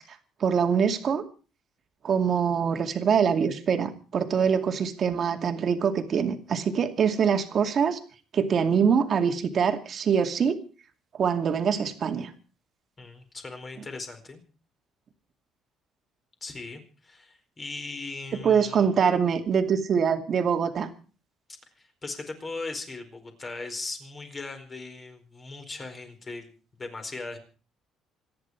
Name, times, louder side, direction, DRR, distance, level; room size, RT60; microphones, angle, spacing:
voice 1, 0.4-1.2 2.0-8.0 8.3-10.6 11.2-12.3 18.4-20.9, right 7 dB, 45° right, 6 dB, 2.4 m, -24 dB
voice 2, 13.0-14.4 16.4-18.9 21.8-26.5 26.8-27.4, left 3 dB, 25° left, 6 dB, 4.4 m, -38 dB
26.5 x 10.5 x 4.7 m, 0.37 s
cardioid pair, 140°, 0 cm